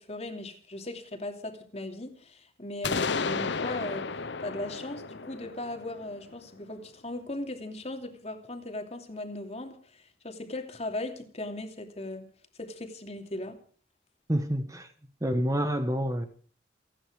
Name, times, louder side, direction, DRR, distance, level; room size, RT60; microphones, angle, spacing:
voice 1, 0.0-12.3 12.6-13.6, left 2 dB, 35° left, 2.8 m, -38 dB
sound 1, 2.8-6.6, left 4 dB, 65° left, 0.8 m, -33 dB
voice 2, 14.3-14.9 15.2-16.3, equal, 15° right, 1.3 m, -28 dB
29.0 x 9.9 x 5.0 m
head